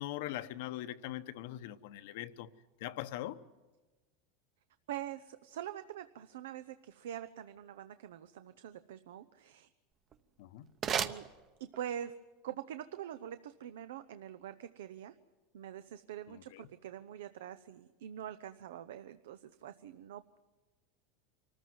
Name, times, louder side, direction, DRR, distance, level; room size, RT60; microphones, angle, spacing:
voice 1, 0.0-2.5 2.8-3.4 10.4-10.7 16.3-16.6, left 14 dB, 70° left, 0.9 m, -41 dB
voice 2, 4.9-9.7 10.8-11.3 11.6-12.1 12.4-15.1 15.5-20.4, right 10 dB, 90° right, 0.7 m, -44 dB
sound 1, 9.9-12.0, right 8 dB, 35° right, 0.9 m, -38 dB
24.5 x 14.5 x 9.4 m
supercardioid pair, 130°, 0 cm